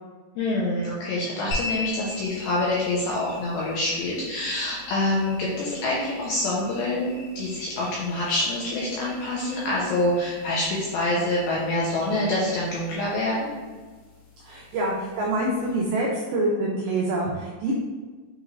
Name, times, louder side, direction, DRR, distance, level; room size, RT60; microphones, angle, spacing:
voice 1, 0.4-13.5, left 1 dB, 80° left, -5 dB, 2.2 m, -26 dB
sound 1, 1.5-16.1, left 3 dB, 55° left, 1.9 m, -41 dB
voice 2, 14.4-17.7, right 2 dB, 85° right, -3 dB, 2.2 m, -26 dB
6.7 x 3.1 x 2.4 m, 1.3 s
omnidirectional pair, 5.0 m